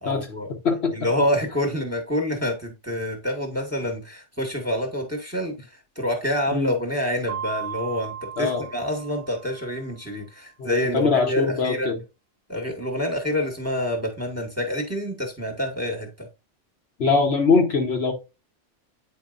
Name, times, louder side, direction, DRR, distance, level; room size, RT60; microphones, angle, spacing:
voice 1, 0.0-0.5 0.9-5.6 5.9-11.9 12.5-16.3, left 1 dB, 10° right, 1.3 m, -27 dB
voice 2, 0.6-1.0 6.5-6.7 8.4-8.7 10.6-12.0 17.0-18.1, left 4 dB, 60° left, 1.2 m, -22 dB
Mallet percussion, 7.3-9.9, right 9 dB, 85° right, 1.1 m, -36 dB
8.8 x 4.7 x 2.5 m
omnidirectional pair, 1.3 m